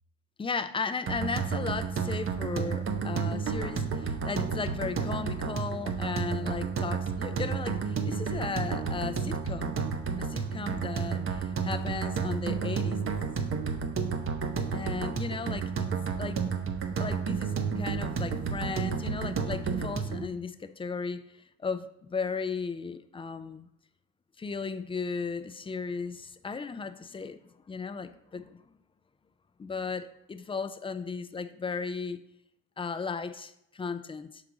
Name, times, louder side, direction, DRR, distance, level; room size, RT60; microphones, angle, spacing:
voice 1, 0.4-9.8 10.2-13.2 14.7-15.9 16.2-16.5 17.0-21.2 21.6-23.7 24.4-27.4 27.7-28.6 29.6-32.2 32.8-34.4, left 5 dB, 20° left, 11 dB, 0.3 m, -36 dB
sound 1, 1.1-20.3, right 6 dB, 45° right, 0.7 m, -31 dB
5.9 x 4.8 x 3.8 m, 0.81 s
cardioid pair, 90°, 30 cm